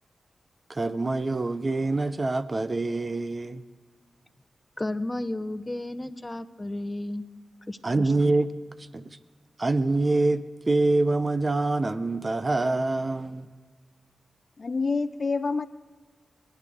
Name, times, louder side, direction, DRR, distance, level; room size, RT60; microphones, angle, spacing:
voice 1, 0.7-3.6 7.8-8.5 8.8-9.2 9.6-13.5, right 2 dB, 40° right, 0.7 m, -25 dB
voice 2, 4.8-7.2 7.7-7.8, left 1 dB, 25° left, 0.9 m, -32 dB
voice 3, 14.6-15.7, left 4 dB, 55° left, 0.5 m, -27 dB
25.5 x 10.5 x 3.6 m
cardioid pair, 40°, 0 cm